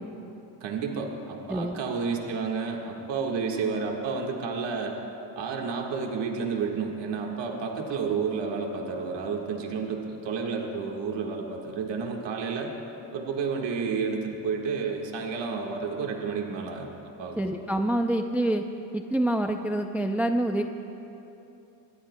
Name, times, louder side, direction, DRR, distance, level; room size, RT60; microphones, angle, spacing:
voice 1, 0.6-5.0 5.3-12.7 13.1-16.9 17.2-17.4, right 5 dB, 70° right, 1 dB, 1.7 m, -31 dB
voice 2, 17.4-18.7 18.9-20.6, right 1 dB, 5° right, 5 dB, 0.4 m, -26 dB
23.5 x 20.5 x 2.2 m, 2.9 s
cardioid pair, 120°, 45 cm